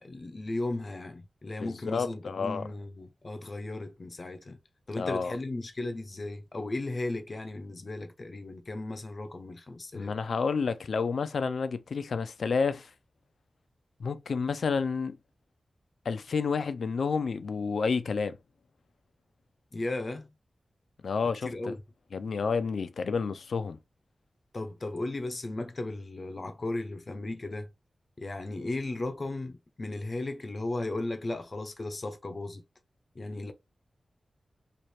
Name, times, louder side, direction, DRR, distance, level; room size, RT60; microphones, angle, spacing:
voice 1, 0.0-4.6 4.9-10.1 19.7-20.3 21.4-21.8 24.5-27.7 28.2-32.6 33.2-33.5, left 2 dB, 40° left, 0.6 m, -36 dB
voice 2, 1.6-2.6 5.0-5.4 9.9-12.9 14.0-15.2 16.1-18.4 21.0-21.8 22.1-23.8, left 5 dB, 85° left, 0.4 m, -30 dB
3.2 x 2.4 x 4.3 m
wide cardioid pair, 115°, 0 cm